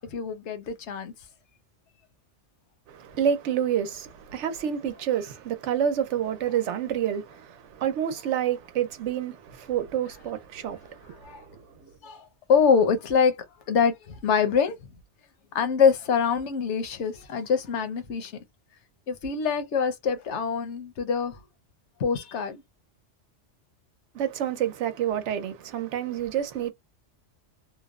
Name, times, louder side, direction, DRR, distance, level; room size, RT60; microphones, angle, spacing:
voice 1, 0.1-1.1 11.2-11.4 11.8-14.8 15.5-18.3 19.1-21.4 22.0-22.6, left 6 dB, 75° left, 1.0 m, -25 dB
voice 2, 2.9-11.6 24.1-26.7, right 9 dB, 75° right, 0.9 m, -28 dB
3.0 x 2.0 x 2.3 m
omnidirectional pair, 1.2 m